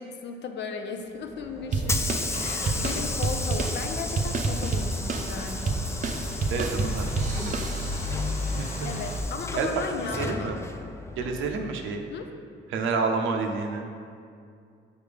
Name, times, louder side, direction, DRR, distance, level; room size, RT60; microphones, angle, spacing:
voice 1, 0.0-2.0 2.4-5.9 8.8-10.6 12.1-12.3, left 5 dB, 60° left, 5 dB, 0.6 m, -35 dB
Hiss / Sliding door, 1.2-12.0, left 3 dB, 15° left, 0.3 m, -36 dB
Car / Engine starting / Idling, 1.4-9.2, left 1 dB, 40° left, 0.8 m, -35 dB
sound 1, 1.7-8.2, right 3 dB, 40° right, 0.6 m, -29 dB
voice 2, 6.5-7.6 8.5-8.7 9.5-9.7 10.1-10.6 11.2-12.0 12.7-13.8, right 4 dB, 85° right, 3 dB, 0.6 m, -29 dB
6.9 x 4.4 x 3.4 m, 2.3 s
cardioid pair, 90°, 20 cm